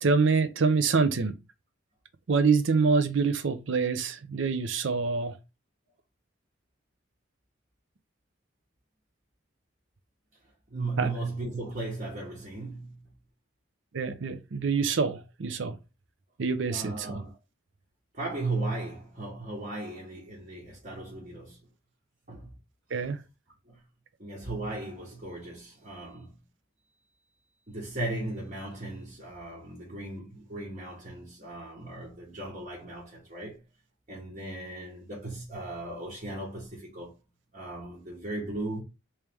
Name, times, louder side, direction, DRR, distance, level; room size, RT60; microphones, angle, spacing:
voice 1, 0.0-1.3 2.3-5.3 11.0-11.1 13.9-15.8 16.4-17.2 22.9-23.2, right 4 dB, 65° right, 0.5 m, -26 dB
voice 2, 10.7-13.1 16.7-17.3 18.1-21.6 22.3-22.5 23.7-23.8 24.2-26.4 27.7-33.6 34.1-37.1 37.5-38.8, right 2 dB, 40° right, 1.1 m, -36 dB
3.3 x 3.0 x 3.4 m
head